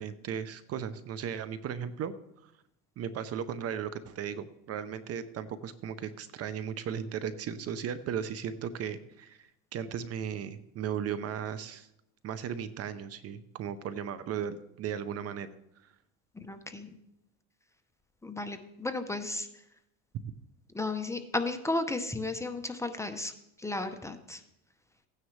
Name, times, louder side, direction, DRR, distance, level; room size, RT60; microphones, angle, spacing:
voice 1, 0.0-2.1 3.0-11.9 12.2-15.5 20.1-20.2, right 8 dB, 40° right, 14 dB, 0.7 m, -36 dB
voice 2, 16.4-16.9 18.2-19.5 20.7-23.3 23.6-24.4, left 2 dB, 10° left, 7 dB, 0.7 m, -34 dB
15.5 x 9.5 x 3.3 m, 0.82 s
supercardioid pair, 115°, 36 cm